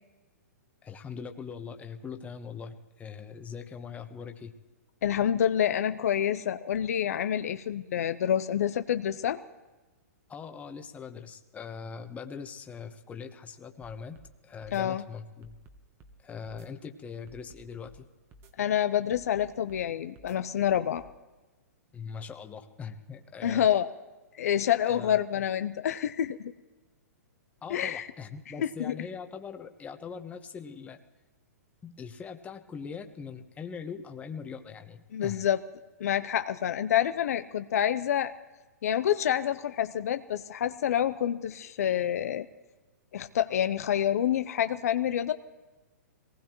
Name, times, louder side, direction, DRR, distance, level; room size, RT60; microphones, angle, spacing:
voice 1, 0.8-4.5 10.3-14.2 14.4-15.5 16.2-18.0 21.9-23.7 24.8-25.4 27.6-31.0 31.8-35.4, left 6 dB, 15° left, 6 dB, 1.2 m, -41 dB
voice 2, 5.0-9.4 14.7-15.0 18.6-21.0 23.4-23.9 24.3-26.5 27.7-28.1 28.6-28.9 35.1-35.6 36.0-38.3 38.8-42.5 43.1-45.3, left 10 dB, 65° left, 11 dB, 0.7 m, -27 dB
sound 1, 13.8-14.3 14.6-14.8 15.4-16.2 16.5-16.7 17.3-18.0 18.3-18.5 19.1-19.9 20.2-20.4 21.0-21.1, right 1 dB, 25° right, 1.3 m, -54 dB
23.0 x 19.0 x 3.1 m, 1.2 s
hypercardioid pair, 125°, 9 cm